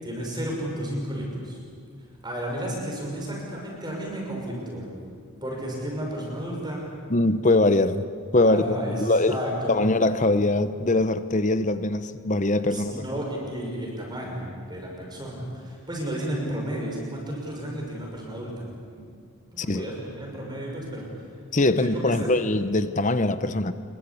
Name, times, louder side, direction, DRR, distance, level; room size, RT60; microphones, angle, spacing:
voice 1, 0.0-1.6 2.2-4.9 5.4-6.9 8.4-9.8 12.7-18.6 18.9-19.0 19.5-21.0 21.8-22.3, equal, 20° right, -1 dB, 6.0 m, -32 dB
voice 2, 7.1-8.1 8.3-9.4 9.7-13.0 19.6-19.9 21.5-23.7, left 2 dB, 35° left, 12 dB, 0.9 m, -22 dB
26.0 x 22.5 x 8.5 m, 2.2 s
head